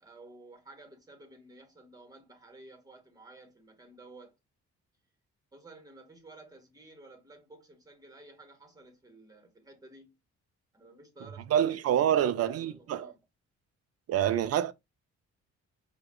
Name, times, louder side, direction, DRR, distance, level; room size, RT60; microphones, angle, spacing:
voice 1, 0.0-4.3 5.5-10.1 10.7-13.2, right 2 dB, 10° right, 1.3 m, -53 dB
voice 2, 11.5-13.1 14.1-14.7, right 10 dB, 55° right, 0.5 m, -26 dB
4.8 x 2.3 x 2.2 m
cardioid pair, 90°, 30 cm